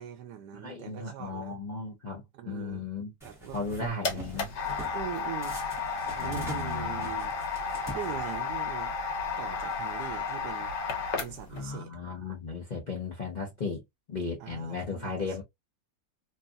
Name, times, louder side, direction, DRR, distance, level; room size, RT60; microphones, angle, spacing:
voice 1, 0.0-1.6 2.3-2.9 3.2-4.3 4.9-5.6 6.1-7.3 7.9-8.9 9.4-10.7 11.2-11.9 14.4-15.4, right 10 dB, 75° right, 1.2 m, -41 dB
voice 2, 0.5-3.1 3.5-4.5 6.2-7.1 11.5-13.8 14.1-15.4, left 4 dB, 35° left, 0.8 m, -36 dB
sound 1, 3.2-3.8 4.2-5.0 5.4-8.6, equal, ahead, 0.8 m, -44 dB
sound 2, 3.5-11.6, left 5 dB, 85° left, 1.5 m, -33 dB
3.3 x 2.4 x 2.4 m
omnidirectional pair, 1.8 m